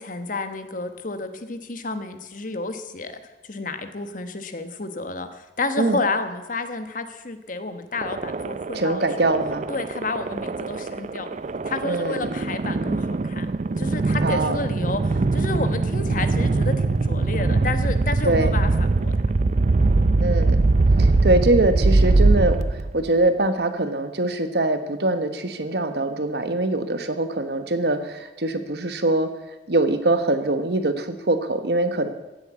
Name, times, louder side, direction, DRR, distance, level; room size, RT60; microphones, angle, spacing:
voice 1, 0.0-3.2 3.5-9.3 9.7-11.3 11.6-13.5 13.8-18.7 19.0-19.1, left 3 dB, 50° left, 9 dB, 1.2 m, -30 dB
sound 1, 8.0-23.1, right 3 dB, 40° right, 0.4 m, -22 dB
voice 2, 8.7-9.7 11.8-12.3 14.2-14.6 18.2-18.5 20.2-20.6 21.0-29.3 29.7-32.1, right 2 dB, 65° right, 9 dB, 1.3 m, -23 dB
15.5 x 8.2 x 8.2 m, 1.1 s
head